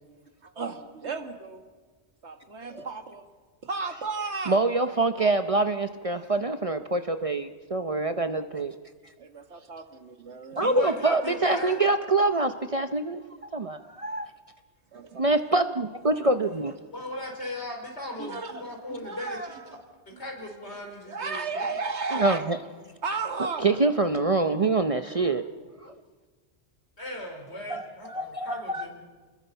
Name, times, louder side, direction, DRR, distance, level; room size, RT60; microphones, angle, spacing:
voice 1, 0.4-1.7 2.2-3.2 3.6-4.6 9.2-10.8 14.9-15.3 16.7-16.8 18.2-19.6 20.1-20.2 21.1-22.5 23.0-23.7, right 4 dB, 80° right, 1.9 m, -34 dB
voice 2, 4.5-8.7 10.6-13.2 13.5-14.3 15.2-16.7 22.1-22.6 23.6-25.5 25.8-25.9 27.7-28.9, right 2 dB, 35° right, 0.7 m, -25 dB
voice 3, 10.6-11.8 16.9-19.6 20.2-21.7 27.0-28.9, left 1 dB, 75° left, 4.6 m, -37 dB
28.5 x 20.5 x 5.7 m
omnidirectional pair, 1.1 m